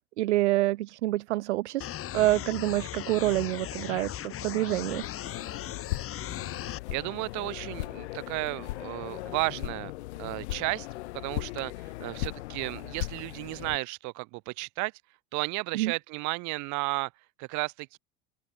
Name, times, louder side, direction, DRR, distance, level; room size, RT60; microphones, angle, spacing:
voice 1, 0.0-1.9 2.1-5.0 15.7-15.9, right 17 dB, 75° right, 0.6 m, -27 dB
sound 1, 1.8-6.8, left 12 dB, 40° left, 2.6 m, -38 dB
sound 2, 5.0-13.8, left 19 dB, 70° left, 0.7 m, -38 dB
voice 2, 6.9-9.9 10.2-10.9 11.1-14.9 15.3-17.1 17.4-18.0, right 26 dB, 55° right, 2.4 m, -33 dB
open air
hypercardioid pair, 80°, 35 cm